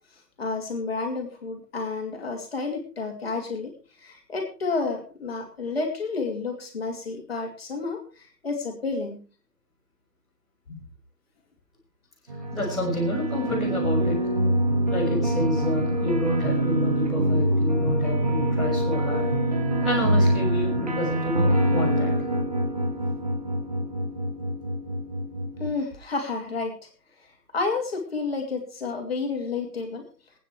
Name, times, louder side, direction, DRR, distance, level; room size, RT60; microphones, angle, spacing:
voice 1, 0.4-3.7 4.0-9.2 10.7-10.8 25.6-26.7 27.5-30.0, left 4 dB, 35° left, 3 dB, 2.8 m, -30 dB
sound 1, 12.3-25.7, right 1 dB, 25° right, 1.2 m, -25 dB
voice 2, 12.5-14.2 14.9-19.3 19.8-22.1, left 1 dB, ahead, -13 dB, 1.6 m, -28 dB
24.0 x 9.2 x 3.2 m, 0.35 s
figure-of-eight pair, 150°, 49 cm